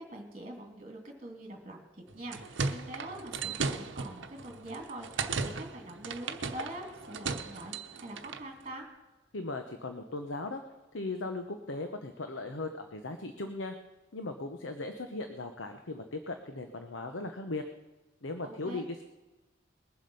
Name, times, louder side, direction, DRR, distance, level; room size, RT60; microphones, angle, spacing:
voice 1, 0.0-8.9 18.4-18.9, right 1 dB, 35° right, 2 dB, 2.6 m, -44 dB
sound 1, 2.1-8.5, right 4 dB, 70° right, 0.9 m, -36 dB
voice 2, 9.3-10.6 10.9-13.8 14.1-17.6 18.2-19.0, left 2 dB, 80° left, 6 dB, 1.0 m, -38 dB
21.0 x 7.6 x 5.5 m, 1.1 s
head